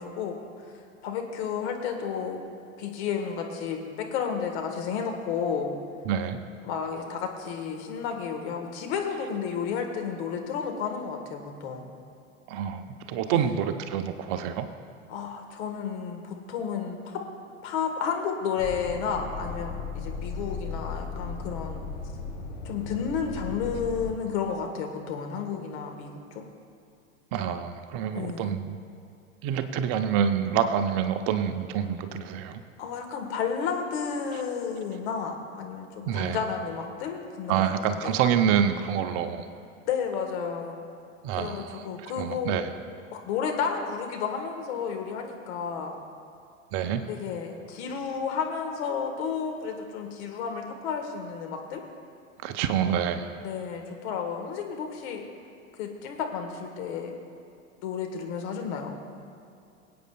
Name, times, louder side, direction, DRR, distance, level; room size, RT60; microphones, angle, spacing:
voice 1, 0.0-2.4 2.8-5.7 6.6-11.9 13.3-13.5 15.1-17.2 17.6-21.8 22.6-26.4 28.1-28.5 32.8-37.6 37.9-38.2 39.9-40.8 41.3-42.6 43.1-46.0 47.1-51.8 53.4-55.2 55.8-57.1 57.8-58.9, left 6 dB, 55° left, 3 dB, 1.5 m, -32 dB
voice 2, 6.1-6.4 12.5-14.7 27.3-28.8 29.4-32.6 36.1-36.4 37.5-39.5 41.2-41.8 42.2-42.7 46.7-47.0 52.4-53.3, right 8 dB, 45° right, 9 dB, 0.7 m, -27 dB
sound 1, 18.6-24.1, left 4 dB, 70° left, 2.8 m, -36 dB
23.5 x 8.5 x 2.3 m, 2.6 s
figure-of-eight pair, 85°, 40 cm